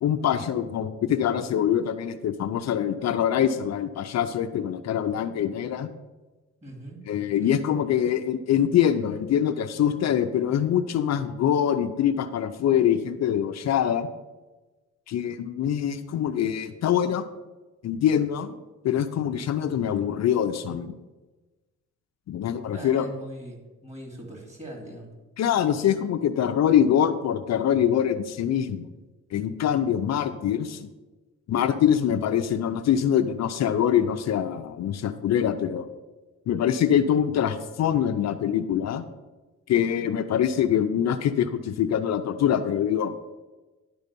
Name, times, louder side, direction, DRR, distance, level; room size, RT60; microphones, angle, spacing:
voice 1, 0.0-5.9 7.1-14.1 15.1-17.3 17.8-18.6 18.8-20.9 22.3-23.1 25.4-28.9 29.3-30.9 31.5-35.9 36.5-39.0 39.7-43.1, left 9 dB, 60° left, 8 dB, 0.6 m, -24 dB
voice 2, 6.6-7.0 7.4-7.6 22.7-25.1, right 1 dB, 20° right, 1 dB, 2.9 m, -41 dB
10.5 x 4.0 x 6.8 m, 1.2 s
cardioid pair, 90°, 30 cm